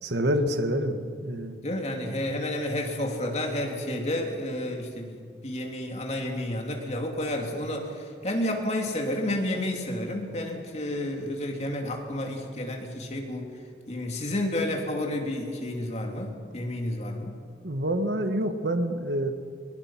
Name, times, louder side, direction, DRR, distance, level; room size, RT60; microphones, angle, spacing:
voice 1, 0.0-1.5 17.6-19.3, equal, 70° right, 8 dB, 1.5 m, -27 dB
voice 2, 1.6-13.5 13.9-17.4, left 1 dB, 40° left, 2 dB, 2.8 m, -31 dB
22.0 x 22.0 x 5.9 m, 2.2 s
head